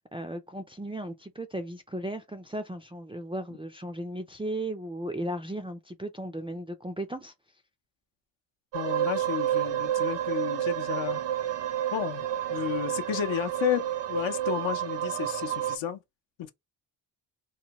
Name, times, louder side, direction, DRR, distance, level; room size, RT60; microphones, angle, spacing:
voice 1, 0.1-7.3, right 1 dB, 10° right, 0.3 m, -36 dB
voice 2, 8.7-11.2 11.9-16.0 16.4-16.5, left 10 dB, 70° left, 0.7 m, -32 dB
sound 1, 8.7-15.8, right 11 dB, 60° right, 0.7 m, -30 dB
3.1 x 2.2 x 2.8 m
cardioid pair, 75°, 49 cm